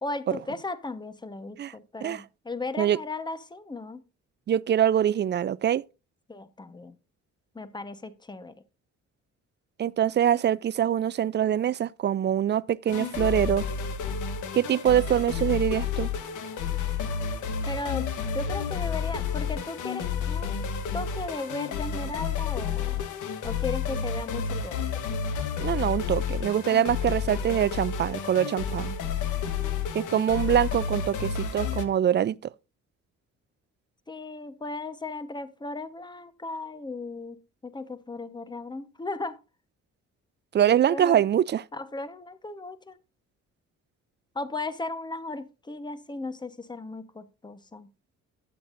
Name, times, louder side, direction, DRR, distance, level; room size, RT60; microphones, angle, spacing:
voice 1, 0.0-4.0 6.3-6.9 7.5-8.5 17.7-18.1 18.3-20.5 20.9-23.0 23.4-24.8 29.6-30.3 34.1-37.4 37.6-39.4 40.9-41.2 41.7-43.0 44.3-47.9, left 2 dB, 15° left, 1.1 m, -36 dB
voice 2, 4.5-5.8 9.8-13.7 14.5-16.1 25.6-29.0 29.9-32.5 40.5-41.6, right 10 dB, 35° right, 0.4 m, -24 dB
sound 1, 12.9-31.9, left 6 dB, 80° left, 1.3 m, -30 dB
12.0 x 8.3 x 2.6 m
cardioid pair, 90°, 30 cm